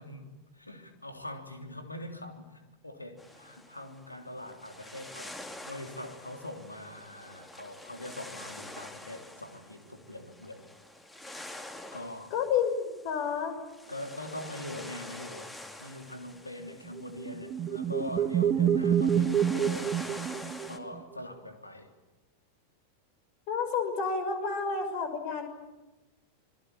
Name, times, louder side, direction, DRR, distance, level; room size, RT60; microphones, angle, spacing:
voice 1, 0.0-10.7 11.9-12.3 13.9-15.5 15.8-19.9 20.6-21.9, left 1 dB, 85° left, 5 dB, 3.4 m, -43 dB
sound 1, 3.2-20.8, left 1 dB, 10° left, 2.6 m, -47 dB
voice 2, 12.3-13.5 23.5-25.5, left 6 dB, 45° left, 7 dB, 6.2 m, -30 dB
sound 2, 17.0-21.0, right 9 dB, 30° right, 1.8 m, -27 dB
27.0 x 22.5 x 8.9 m, 1.1 s
figure-of-eight pair, 90°, 0 cm